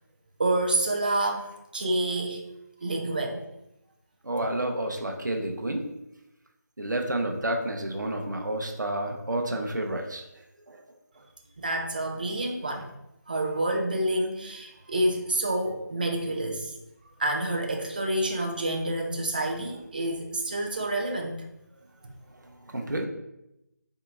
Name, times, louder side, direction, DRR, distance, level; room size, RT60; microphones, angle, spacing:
voice 1, 0.4-2.4 2.8-3.5 11.6-12.9 13.3-16.8 17.2-21.4, right 1 dB, 30° right, 2 dB, 0.4 m, -28 dB
voice 2, 4.2-5.8 6.8-10.2 10.7-10.8 22.7-23.1, right 1 dB, 75° right, 3 dB, 0.7 m, -30 dB
4.4 x 2.8 x 2.4 m, 0.87 s
figure-of-eight pair, 160°, 10 cm